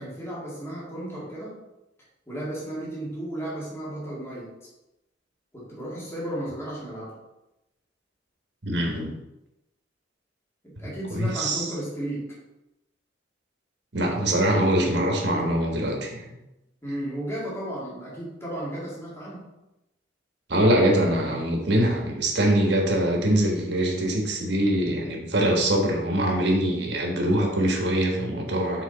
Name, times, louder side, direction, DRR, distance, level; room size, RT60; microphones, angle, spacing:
voice 1, 0.0-1.6 2.3-4.5 5.5-7.2 10.6-12.3 16.8-19.5, right 1 dB, 15° left, -7 dB, 2.1 m, -34 dB
voice 2, 8.6-9.1 11.1-11.7 13.9-16.2 20.5-28.8, right 1 dB, 65° right, 1 dB, 1.4 m, -23 dB
6.8 x 4.2 x 4.0 m, 0.94 s
head